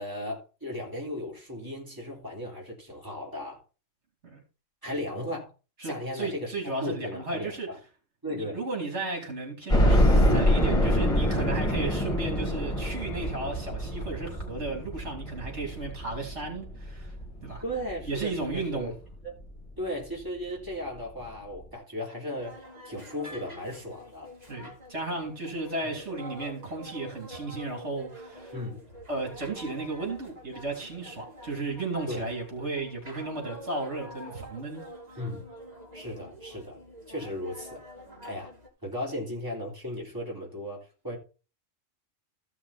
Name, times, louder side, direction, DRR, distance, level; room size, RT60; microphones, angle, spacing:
voice 1, 0.0-3.6 4.8-5.5 5.8-6.5 6.8-7.8 8.2-8.6 17.6-18.9 19.2-19.3 19.8-24.3 28.5-28.8 32.1-32.3 35.2-35.5 35.9-36.8 37.1-37.9 38.2-38.5 38.8-41.2, left 1 dB, 15° right, 3.5 m, -36 dB
voice 2, 5.8-7.7 8.3-17.1 17.4-17.6 18.1-18.9 24.5-28.6 29.1-34.8, right 3 dB, 65° right, 3.6 m, -34 dB
sound 1, 9.7-18.6 19.1-19.2 19.6-19.7 20.8-20.9 21.2-21.3, equal, 25° left, 2.5 m, -26 dB
sound 2, 22.3-38.7, equal, 30° right, 2.8 m, -46 dB
14.5 x 6.0 x 4.2 m
omnidirectional pair, 1.3 m